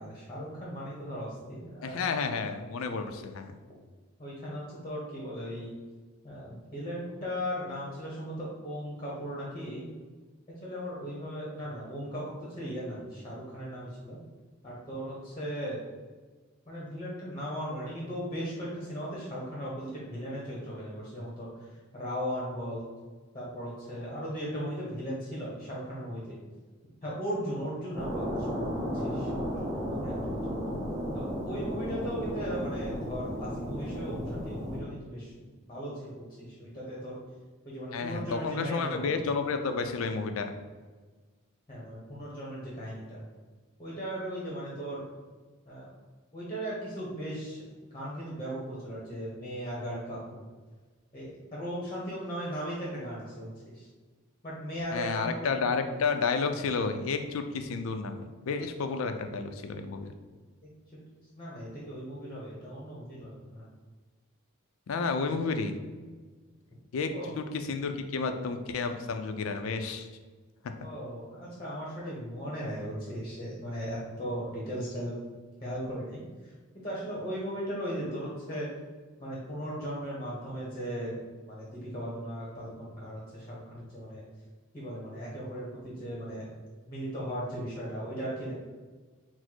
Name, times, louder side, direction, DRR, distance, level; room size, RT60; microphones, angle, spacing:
voice 1, 0.0-2.0 4.2-5.7 6.2-9.9 10.6-14.2 14.6-15.8 16.7-22.9 23.3-26.4 27.0-30.4 31.1-37.2 37.6-39.2 41.7-43.2 43.8-45.1 45.7-45.9 46.3-47.6 47.9-50.4 51.1-53.9 54.4-55.5 61.4-63.6 67.1-67.3 70.8-75.1 75.6-78.7 79.2-81.2 81.4-84.2 84.7-86.5 86.9-88.5, equal, 20° left, -6 dB, 0.9 m, -37 dB
voice 2, 1.8-3.5 37.9-40.5 54.9-60.1 64.9-65.8 66.9-67.1 67.4-70.1, left 4 dB, 75° left, 7 dB, 0.4 m, -31 dB
sound 1, 27.9-34.8, equal, 15° right, 0.9 m, -34 dB
4.2 x 2.0 x 4.4 m, 1.4 s
head